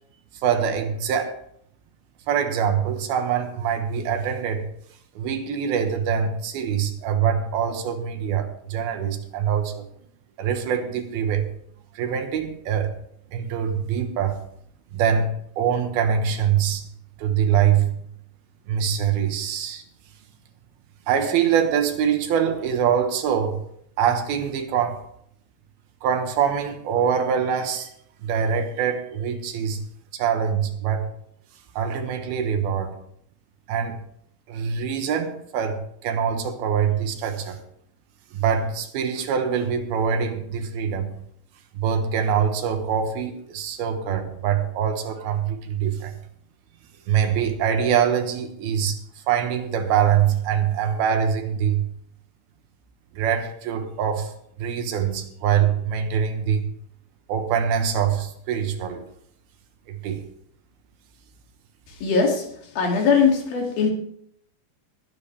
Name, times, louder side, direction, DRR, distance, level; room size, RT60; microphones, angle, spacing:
voice 1, 0.4-1.4 2.3-4.7 5.2-9.9 10.4-11.5 11.9-13.0 13.3-14.4 14.9-16.8 17.2-18.0 18.7-19.8 21.1-23.6 24.0-25.0 26.0-27.9 28.2-29.8 30.1-31.1 31.7-32.9 33.7-34.0 34.5-37.6 38.3-41.1 41.7-46.2 47.1-49.0 49.3-51.9 53.1-54.3 54.6-56.7 57.3-59.0 59.9-60.2, right 8 dB, 80° right, 3.2 m, -24 dB
voice 2, 61.9-62.4 62.8-63.9, left 5 dB, 70° left, 4.3 m, -20 dB
21.5 x 9.2 x 3.4 m
omnidirectional pair, 4.3 m